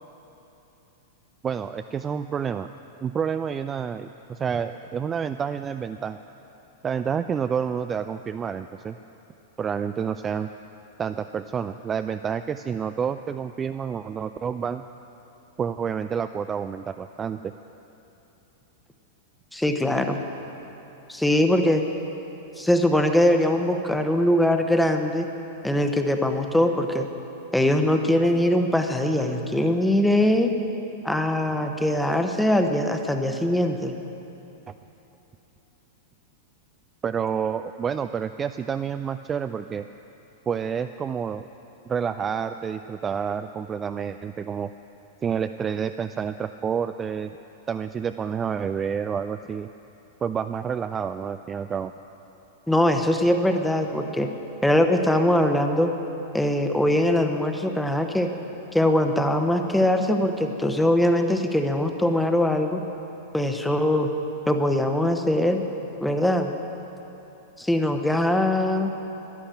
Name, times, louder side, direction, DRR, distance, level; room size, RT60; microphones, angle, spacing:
voice 1, 1.4-2.7 3.0-6.2 6.8-9.0 9.6-10.5 11.0-14.8 15.6-17.5 37.0-39.8 40.5-41.5 41.9-44.7 45.2-47.3 47.7-49.7 50.2-51.9, right 7 dB, 20° right, 10 dB, 0.3 m, -29 dB
voice 2, 19.5-20.2 21.1-21.8 22.6-25.3 25.6-27.1 27.5-30.5 31.0-34.0 52.7-54.3 54.6-55.9 56.3-58.3 58.7-62.8 63.3-64.1 64.5-65.6 66.0-66.5 67.6-68.9, left 1 dB, 5° left, 5 dB, 1.0 m, -22 dB
12.0 x 11.0 x 8.9 m, 3.0 s
figure-of-eight pair, 95°, 0 cm